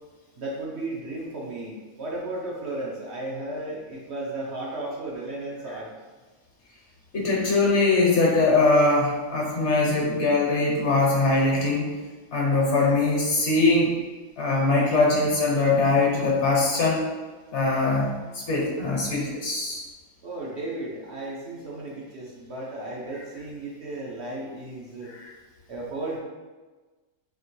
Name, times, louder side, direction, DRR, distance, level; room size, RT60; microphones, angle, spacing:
voice 1, 0.4-5.9 20.2-25.1 25.7-26.2, right 2 dB, 60° right, -3 dB, 0.8 m, -34 dB
voice 2, 7.1-12.0 12.3-14.0 14.4-17.0 17.5-19.8 25.1-25.3, left 3 dB, 60° left, -3 dB, 1.1 m, -22 dB
4.3 x 2.9 x 3.0 m, 1.3 s
omnidirectional pair, 1.5 m